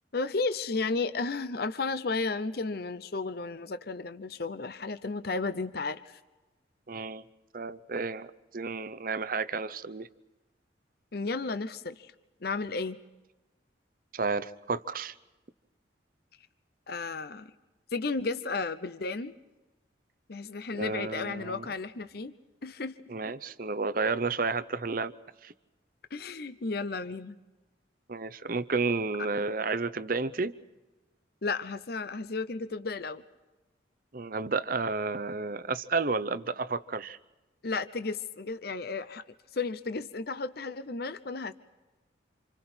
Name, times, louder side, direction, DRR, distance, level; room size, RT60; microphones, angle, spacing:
voice 1, 0.1-6.2 11.1-12.1 12.4-13.0 16.9-17.5 17.9-19.3 20.3-22.4 22.6-22.9 26.1-27.4 31.4-33.2 37.6-39.2 39.5-41.5, left 3 dB, 55° left, 11 dB, 0.7 m, -33 dB
voice 2, 6.9-7.2 7.5-8.3 8.5-10.1 14.1-15.1 20.7-21.7 23.1-25.1 25.4-25.5 28.1-30.5 34.1-37.2, right 4 dB, 45° right, 13 dB, 0.7 m, -31 dB
28.5 x 27.5 x 4.4 m, 1.1 s
head